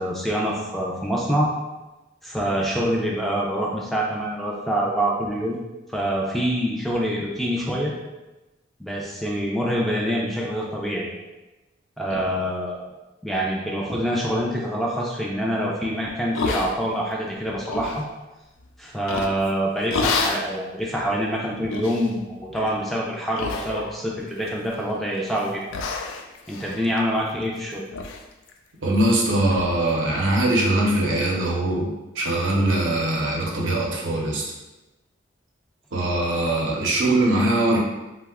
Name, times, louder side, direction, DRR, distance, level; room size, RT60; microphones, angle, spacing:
voice 1, 0.0-1.5 2.2-5.6 5.9-7.9 8.8-11.1 12.0-12.8 13.2-18.0 18.8-25.6 26.5-27.9, equal, ahead, -4 dB, 0.3 m, -25 dB
sound 1, 16.3-17.1 17.5-18.0 19.1-19.5 19.9-20.5 21.0-21.1 21.7-22.1 22.5-22.8 23.4-24.1 24.4-24.9 25.3-25.5 25.7-27.6 27.9-28.2 28.5-28.6 29.0-29.1 29.5-29.7, left 4 dB, 85° left, 0.3 m, -29 dB
voice 2, 28.8-34.4 35.9-37.8, right 1 dB, 80° right, -2 dB, 0.6 m, -22 dB
2.8 x 2.1 x 3.5 m, 1.1 s
head